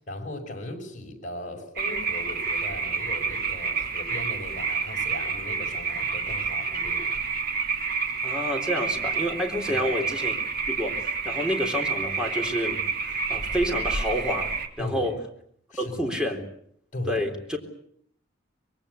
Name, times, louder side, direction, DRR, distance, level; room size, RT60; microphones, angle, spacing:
voice 1, 0.0-7.2 9.7-10.0 14.8-15.2 15.7-16.1 16.9-17.3, left 1 dB, 40° left, 3 dB, 6.0 m, -38 dB
sound 1, 1.8-14.7, right 5 dB, 50° right, 3.1 m, -29 dB
voice 2, 8.2-10.3 10.6-14.5 14.8-15.1 15.8-16.4 17.1-17.3, equal, 5° right, 3 dB, 3.7 m, -29 dB
25.0 x 22.0 x 8.4 m, 0.66 s
head